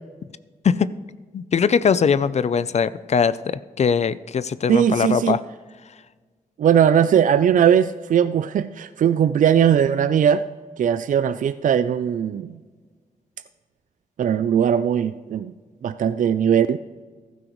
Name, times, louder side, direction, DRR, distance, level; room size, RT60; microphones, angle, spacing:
voice 1, 1.3-5.4, left 6 dB, 50° left, 16 dB, 0.5 m, -21 dB
voice 2, 4.7-5.4 6.6-10.4 10.8-12.6 14.2-15.5 15.8-16.8, right 8 dB, 65° right, 12 dB, 0.4 m, -19 dB
14.5 x 12.5 x 3.1 m, 1.4 s
cardioid pair, 85°, 14 cm